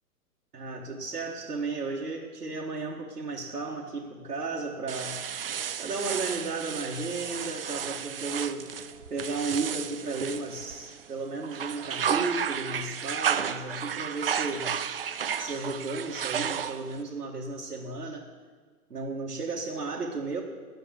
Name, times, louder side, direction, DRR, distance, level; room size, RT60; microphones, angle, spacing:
voice 1, 0.5-5.2 5.8-8.7 9.1-14.7 15.4-18.2 18.9-20.4, right 3 dB, 85° right, -4 dB, 1.7 m, -34 dB
sound 1, 4.9-11.1 11.4-17.0, right 8 dB, 40° right, 0.4 m, -33 dB
10.5 x 7.1 x 8.4 m, 1.5 s
figure-of-eight pair, 130°, 46 cm